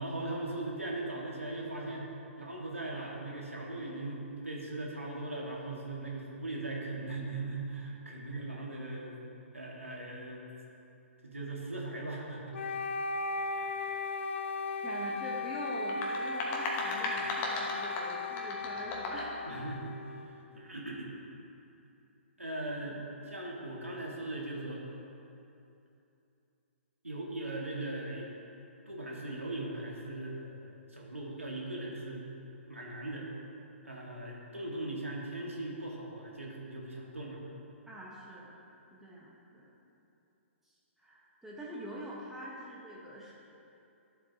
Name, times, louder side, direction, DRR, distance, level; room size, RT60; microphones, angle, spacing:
voice 1, 0.0-2.1 2.3-9.2 9.5-10.4 11.2-12.6 13.5-13.7 19.4-21.1 22.4-23.0 23.2-24.8 27.0-28.3 28.8-32.3 32.7-33.3 33.8-37.4, right 2 dB, 90° right, -3 dB, 1.8 m, -39 dB
Wind instrument woodwind instrument, 12.5-20.6, left 3 dB, 65° left, 0.4 m, -37 dB
voice 2, 14.8-19.3 37.9-38.6 38.9-39.7 41.0-43.3, right 1 dB, 5° right, -6 dB, 1.1 m, -44 dB
sound 1, 15.7-19.4, left 2 dB, 25° left, 1.2 m, -36 dB
12.0 x 7.6 x 2.9 m, 2.7 s
figure-of-eight pair, 120°, 7 cm